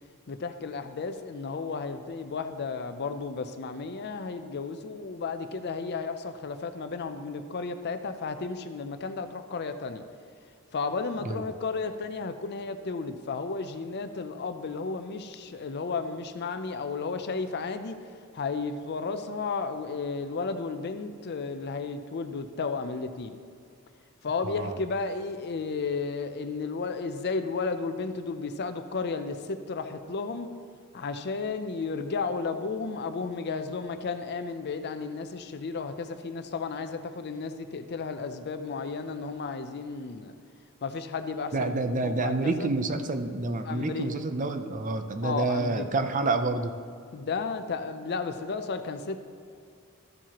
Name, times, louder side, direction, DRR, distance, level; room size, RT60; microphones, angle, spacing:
voice 1, 0.3-10.0 10.7-23.3 24.2-30.5 30.9-40.3 40.8-42.7 43.6-44.1 45.2-45.9 47.1-49.2, left 4 dB, 50° left, 9 dB, 0.5 m, -33 dB
voice 2, 24.4-24.7 41.5-46.7, right 3 dB, 35° right, 8 dB, 0.5 m, -28 dB
13.5 x 7.3 x 2.9 m, 2.3 s
head